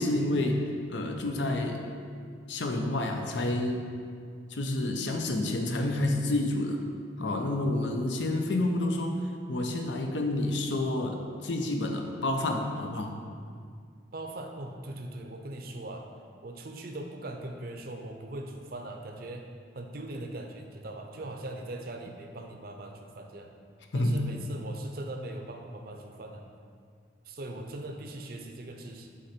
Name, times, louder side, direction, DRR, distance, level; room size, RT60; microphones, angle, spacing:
voice 1, 0.0-1.8 2.5-3.9 4.5-6.8 7.2-9.2 9.5-13.2 23.9-24.3, left 1 dB, 85° left, 3 dB, 0.7 m, -29 dB
voice 2, 14.1-16.1 16.4-19.5 19.7-23.5 23.9-26.4 27.2-29.1, right 1 dB, 55° right, 4 dB, 0.6 m, -40 dB
6.5 x 3.9 x 4.3 m, 2.1 s
head